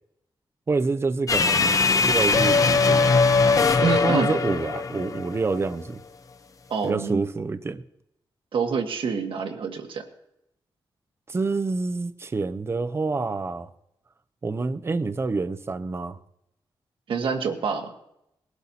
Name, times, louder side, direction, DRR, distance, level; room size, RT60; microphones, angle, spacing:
voice 1, 0.7-3.2 4.0-6.0 6.8-7.8 11.3-13.7 14.4-16.2, right 3 dB, 30° right, 0.6 m, -27 dB
sound 1, 1.3-5.6, left 4 dB, 40° left, 0.7 m, -21 dB
voice 2, 3.8-4.3 6.7-7.2 8.5-10.1 17.1-17.9, right 5 dB, 80° right, 1.6 m, -27 dB
20.5 x 12.5 x 2.8 m
wide cardioid pair, 125°, 9 cm